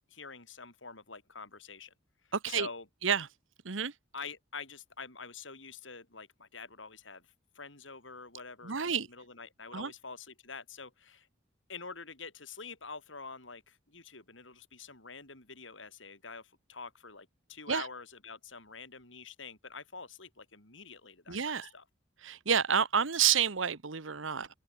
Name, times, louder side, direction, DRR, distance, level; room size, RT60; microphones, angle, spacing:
voice 1, 0.1-1.9 2.5-2.8 4.1-7.2 7.5-11.3 11.7-21.8, left 4 dB, 75° left, 6.7 m, -46 dB
voice 2, 2.3-2.7 3.0-3.3 3.6-3.9 8.6-9.1 9.7-9.9 17.7-17.9 21.3-21.7 22.2-24.5, right 7 dB, 80° right, 1.2 m, -29 dB
open air
head